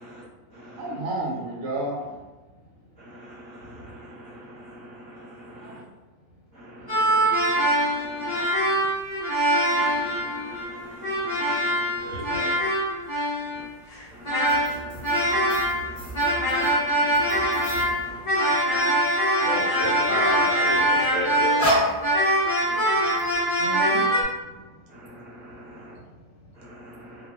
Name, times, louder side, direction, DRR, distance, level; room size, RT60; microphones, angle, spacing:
voice 1, 0.8-2.2 5.6-5.8 8.2-8.9 10.0-10.1 18.1-18.6 18.9-19.0 22.6-23.3 23.6-24.1, right 2 dB, 85° right, -2 dB, 1.1 m, -34 dB
voice 2, 3.2-3.7 4.0-5.7 7.7-7.9 8.2-8.5 9.7-12.1 14.1-14.2 15.2-16.1 17.3-17.7 25.6-25.8 26.8-26.9, equal, 5° left, -10 dB, 0.5 m, -45 dB
sound 1, 6.9-15.9 16.1-24.2, right 1 dB, 30° left, 0.9 m, -23 dB
voice 3, 12.0-12.5 19.4-21.5, left 1 dB, 60° left, -7 dB, 1.3 m, -31 dB
sound 2, 14.4-18.7 19.0-20.2 21.0-22.7 23.1-23.4, equal, 20° right, 1.4 m, -31 dB
2.7 x 2.6 x 2.3 m, 1.2 s
omnidirectional pair, 1.4 m